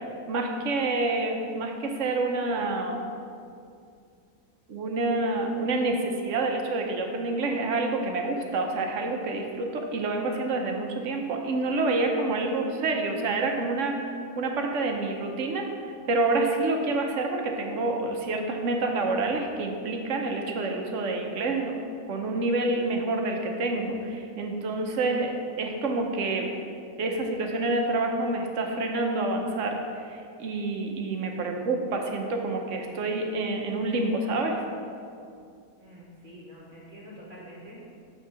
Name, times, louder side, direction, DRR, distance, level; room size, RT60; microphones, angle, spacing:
voice 1, 0.3-3.1 4.7-14.0 14.4-21.8 22.1-26.5 27.0-34.6, right 2 dB, 60° right, 3 dB, 1.0 m, -28 dB
voice 2, 35.8-37.8, equal, 25° right, -6 dB, 1.3 m, -46 dB
8.2 x 3.6 x 6.0 m, 2.4 s
omnidirectional pair, 1.6 m